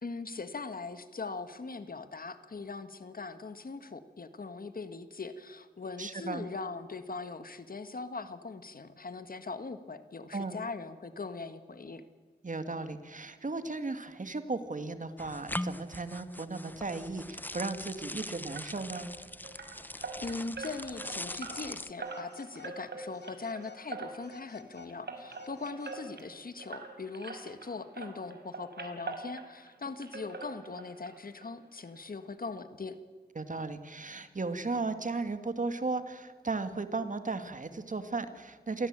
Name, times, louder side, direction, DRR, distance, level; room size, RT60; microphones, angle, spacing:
voice 1, 0.0-12.0 19.9-33.0, left 4 dB, 55° left, 10 dB, 1.7 m, -41 dB
voice 2, 6.0-6.4 10.3-10.6 12.4-19.1 33.4-38.9, right 3 dB, 50° right, 9 dB, 2.2 m, -35 dB
sound 1, 15.2-21.9, left 1 dB, 10° left, 0.9 m, -41 dB
sound 2, 18.5-27.7 27.9-29.7 30.0-31.1 31.4-31.5 31.9-32.0 32.4-32.5, right 3 dB, 75° right, 4.6 m, -43 dB
Telephone, 20.9-21.7 22.0-22.8 23.1-23.8 24.2-26.2, left 7 dB, 80° left, 2.1 m, -53 dB
27.5 x 18.0 x 9.0 m, 1.4 s
wide cardioid pair, 75°, 17 cm